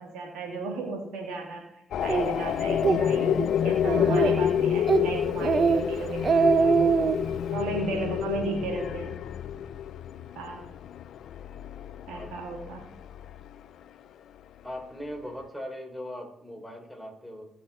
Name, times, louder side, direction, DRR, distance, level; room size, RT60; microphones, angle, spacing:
voice 1, 0.0-1.7 2.0-6.9 7.5-9.2 10.3-10.7 12.1-12.8, right 3 dB, 85° right, 0 dB, 2.8 m, -35 dB
sound 1, 1.9-13.5, left 9 dB, 80° left, 0.4 m, -29 dB
Speech, 2.1-2.2 2.7-3.0 3.4-3.5 3.8-4.5 4.9-5.1 5.4-5.8 6.1-7.2, right 5 dB, 55° right, 0.9 m, -22 dB
voice 2, 14.6-17.5, equal, ahead, 1 dB, 4.6 m, -39 dB
16.0 x 6.5 x 4.4 m, 0.75 s
supercardioid pair, 45°, 0 cm